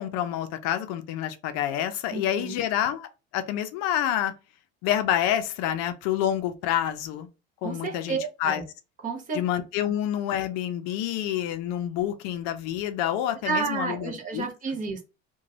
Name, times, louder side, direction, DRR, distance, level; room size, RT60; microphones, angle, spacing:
voice 1, 0.0-4.3 4.8-7.3 7.6-8.6 9.3-14.4, left 11 dB, 60° left, 0.5 m, -28 dB
voice 2, 2.1-2.6 7.6-8.6 9.0-9.4 13.4-15.0, right 4 dB, 25° right, 0.7 m, -31 dB
3.0 x 2.2 x 2.6 m
cardioid pair, 165°, 29 cm